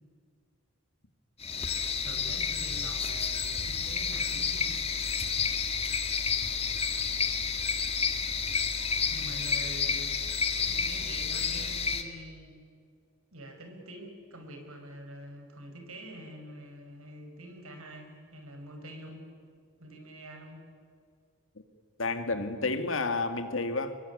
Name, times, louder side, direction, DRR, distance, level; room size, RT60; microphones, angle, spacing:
sound 1, 1.4-12.0, left 6 dB, 25° left, 1.8 m, -30 dB
voice 1, 2.0-4.8 5.4-5.6 9.1-10.3 10.6-12.5 13.3-19.2 19.8-20.6, right 1 dB, 75° right, 4 dB, 6.0 m, -46 dB
voice 2, 22.0-24.0, left 3 dB, 65° left, 8 dB, 2.2 m, -30 dB
26.5 x 22.5 x 9.9 m, 2.2 s
head